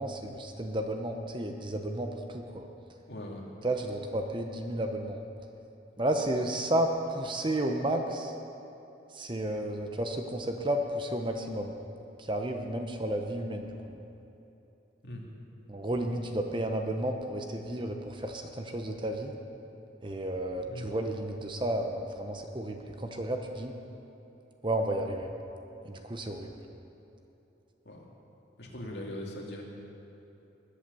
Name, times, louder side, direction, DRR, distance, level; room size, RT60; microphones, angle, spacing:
voice 1, 0.0-2.6 3.6-5.2 6.0-8.3 9.1-11.8 12.2-14.0 15.7-19.3 20.0-23.7 24.6-25.3 25.8-26.5, right 1 dB, 25° right, 4 dB, 0.9 m, -32 dB
voice 2, 3.1-3.5 15.0-15.2 20.7-20.9 27.8-28.0 28.6-29.6, left 1 dB, 65° left, -1 dB, 2.5 m, -40 dB
20.5 x 8.5 x 6.9 m, 3.0 s
head